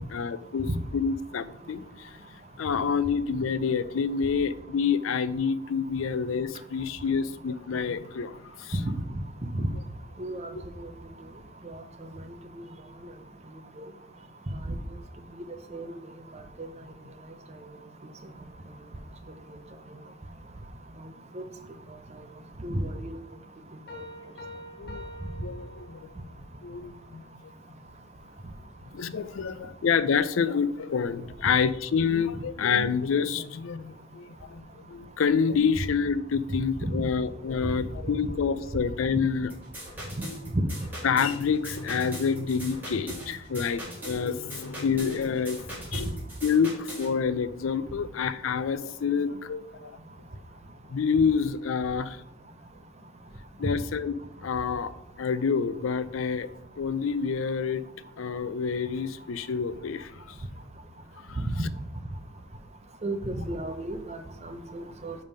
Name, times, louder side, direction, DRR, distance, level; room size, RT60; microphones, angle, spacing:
voice 1, 0.1-2.2 2.6-8.7 24.8-25.0 25.3-26.1 26.6-27.2 28.9-39.5 41.0-46.1 46.4-49.9 50.9-52.2 53.6-56.5 56.8-57.8 58.2-60.4 61.3-61.4, left 6 dB, 80° left, 15 dB, 0.4 m, -28 dB
voice 2, 10.2-10.5 10.8-10.9 13.8-13.9 14.7-14.8 15.7-15.9 21.4-21.5 22.6-23.1 36.8-36.9 40.5-40.6 61.4-61.6 63.0-65.1, right 1 dB, 35° right, 7 dB, 0.7 m, -31 dB
Piano, 23.9-26.4, left 1 dB, 50° left, 1.2 m, -45 dB
sound 1, 39.5-47.1, equal, 10° right, 3.0 m, -41 dB
5.4 x 5.1 x 5.4 m, 0.79 s
head